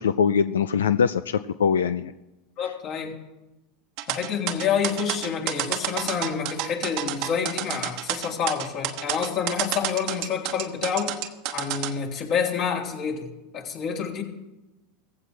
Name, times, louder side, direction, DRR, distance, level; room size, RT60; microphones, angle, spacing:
voice 1, 0.0-2.1, left 7 dB, 85° left, 13 dB, 0.4 m, -22 dB
voice 2, 2.6-3.1 4.1-11.2 11.5-13.3 13.5-14.2, left 7 dB, 50° left, 0 dB, 3.1 m, -28 dB
sound 1, 4.0-11.9, right 13 dB, 60° right, 1.1 m, -29 dB
16.0 x 15.5 x 3.3 m, 1.0 s
hypercardioid pair, 95°, 0 cm